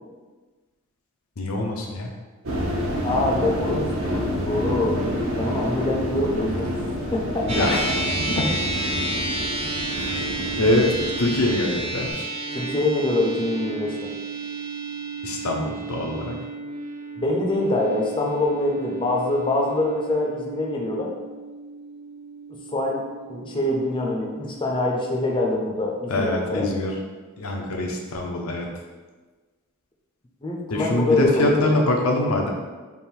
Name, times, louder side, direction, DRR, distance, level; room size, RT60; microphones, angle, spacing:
voice 1, 1.4-2.1 7.5-8.5 10.0-10.2 10.6-12.3 15.2-16.4 26.1-26.9 27.4-28.7 30.7-32.5, left 1 dB, 80° left, 1 dB, 0.7 m, -24 dB
sound 1, 2.4-12.1, equal, 70° right, 0.7 m, -28 dB
voice 2, 3.0-5.0 5.4-6.7 7.1-7.7 12.5-14.1 17.2-21.1 22.7-23.0 23.3-26.7 30.4-31.7, left 2 dB, 25° left, -1 dB, 0.5 m, -24 dB
sound 2, 7.5-26.0, right 2 dB, 30° right, 0.5 m, -32 dB
3.5 x 2.5 x 4.4 m, 1.3 s
head